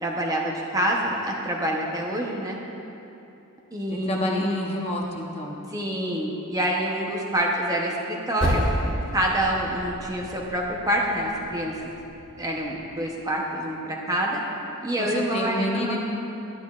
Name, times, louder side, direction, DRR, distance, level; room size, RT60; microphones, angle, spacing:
voice 1, 0.0-2.6 3.7-4.4 5.7-8.6 9.1-11.8 12.4-14.4 14.8-16.0, right 1 dB, 15° right, -2 dB, 0.8 m, -26 dB
voice 2, 3.9-5.6 15.0-16.0, left 1 dB, 30° left, -1 dB, 0.8 m, -28 dB
Percussion, 8.4-13.2, equal, 5° left, 1.9 m, -31 dB
11.5 x 10.0 x 2.4 m, 2.9 s
head